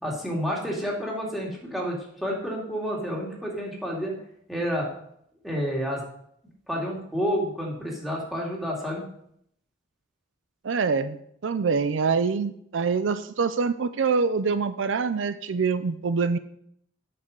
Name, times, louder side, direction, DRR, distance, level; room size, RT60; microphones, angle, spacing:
voice 1, 0.0-4.1 4.5-4.9 5.4-6.0 6.7-9.1, equal, ahead, -3 dB, 2.5 m, -29 dB
voice 2, 10.6-16.4, right 5 dB, 80° right, 12 dB, 0.5 m, -25 dB
8.8 x 6.7 x 5.3 m, 0.70 s
head